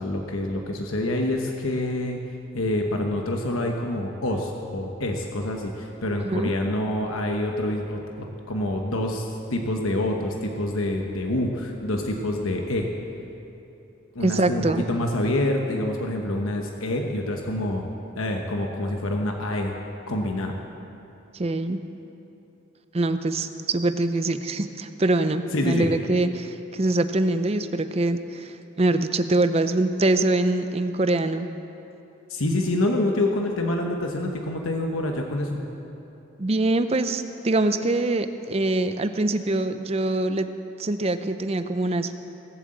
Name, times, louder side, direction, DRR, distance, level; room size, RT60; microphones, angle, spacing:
voice 1, 0.0-2.2 2.5-12.9 14.1-17.9 18.2-19.8 20.1-20.6 25.5-25.9 32.3-35.6, left 1 dB, 85° left, 2 dB, 1.1 m, -26 dB
voice 2, 6.2-6.5 14.2-14.8 21.4-21.8 22.9-31.5 36.4-40.5 40.8-42.1, right 2 dB, 30° right, 10 dB, 0.5 m, -24 dB
18.0 x 7.9 x 7.7 m, 3.0 s
head